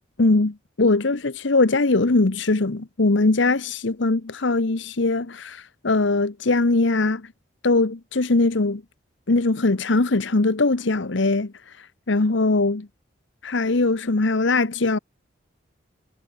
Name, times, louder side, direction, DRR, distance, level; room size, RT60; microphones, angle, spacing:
voice 1, 0.2-7.3 7.6-8.8 9.3-12.9 13.4-15.0, left 3 dB, 70° left, 1.0 m, -21 dB
head